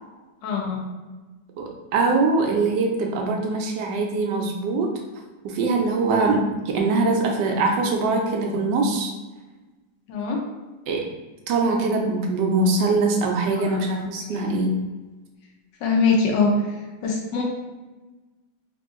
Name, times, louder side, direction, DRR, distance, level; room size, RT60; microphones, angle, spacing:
voice 1, 0.4-0.8 10.1-10.4 14.3-14.4 15.8-16.5 17.0-17.4, left 4 dB, 90° left, -1 dB, 1.4 m, -22 dB
voice 2, 1.6-4.9 5.4-9.1 10.9-11.1 11.5-14.7, right 3 dB, 85° right, 1 dB, 1.3 m, -22 dB
3.6 x 2.6 x 2.4 m, 1.2 s
omnidirectional pair, 1.9 m